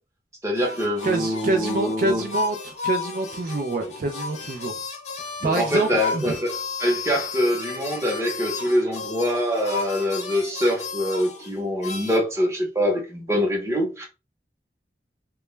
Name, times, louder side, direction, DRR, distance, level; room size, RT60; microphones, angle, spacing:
voice 1, 0.4-2.2 5.4-6.5 6.8-14.1, equal, 15° right, 0.7 m, -24 dB
sound 1, 0.6-12.2, left 4 dB, 40° left, 0.6 m, -33 dB
voice 2, 1.0-4.8 5.2-6.4, right 2 dB, 50° right, 0.4 m, -26 dB
2.2 x 2.1 x 3.0 m
head